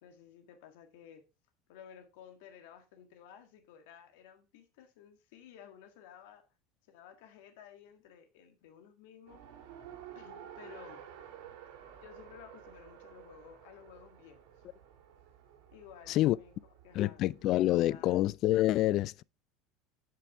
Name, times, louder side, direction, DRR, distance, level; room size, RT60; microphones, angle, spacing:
voice 1, 0.0-1.3 1.7-6.5 6.9-9.6 10.2-11.1 12.0-14.4 15.7-17.2 17.6-18.2, left 8 dB, 75° left, 1.7 m, -55 dB
Race car auto racing, 9.3-18.3, right 9 dB, 80° right, 2.1 m, -52 dB
voice 2, 17.0-19.2, left 15 dB, 55° left, 0.4 m, -27 dB
8.6 x 6.8 x 3.5 m
hypercardioid pair, 95°, 0 cm